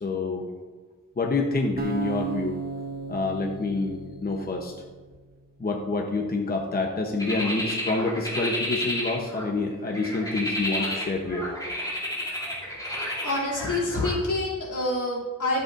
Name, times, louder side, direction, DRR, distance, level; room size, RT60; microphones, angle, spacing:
voice 1, 0.0-0.5 1.2-2.6 3.1-4.7 5.6-11.5, left 3 dB, 30° left, 2 dB, 0.9 m, -27 dB
sound 1, 1.8-4.9, right 5 dB, 30° right, 1.0 m, -34 dB
sound 2, 7.2-9.5 9.9-14.2, left 1 dB, 10° left, 2.8 m, -31 dB
voice 2, 13.2-15.6, left 2 dB, 75° left, -5 dB, 3.0 m, -27 dB
12.5 x 8.0 x 2.6 m, 1.3 s
wide cardioid pair, 115°, 31 cm